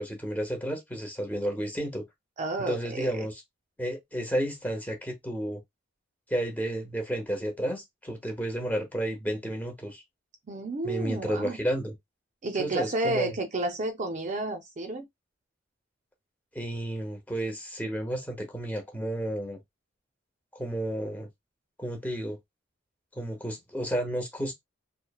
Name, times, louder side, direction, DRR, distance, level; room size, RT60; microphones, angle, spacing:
voice 1, 0.0-2.0 2.6-3.4 3.8-5.6 6.3-10.0 10.8-11.9 12.6-13.4 16.5-19.6 20.5-21.3 21.8-22.4 23.1-24.5, right 1 dB, 10° left, 0.7 m, -32 dB
voice 2, 2.4-3.3 10.5-11.6 12.4-15.1, right 2 dB, 40° right, 0.5 m, -31 dB
3.1 x 2.0 x 2.2 m
head